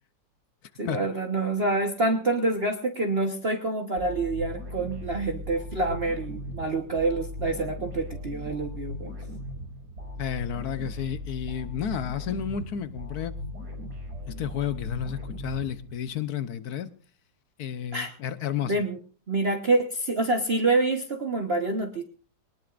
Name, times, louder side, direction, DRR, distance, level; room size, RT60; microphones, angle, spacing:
voice 1, 0.8-9.1 17.9-18.1 18.7-19.0 19.3-22.0, right 2 dB, 35° right, 1.3 m, -27 dB
sound 1, 4.0-16.2, left 1 dB, 60° right, 6.8 m, -38 dB
voice 2, 10.2-13.3 14.3-16.9 17.6-18.7, left 9 dB, 65° left, 1.3 m, -31 dB
21.5 x 19.5 x 2.5 m
omnidirectional pair, 1.9 m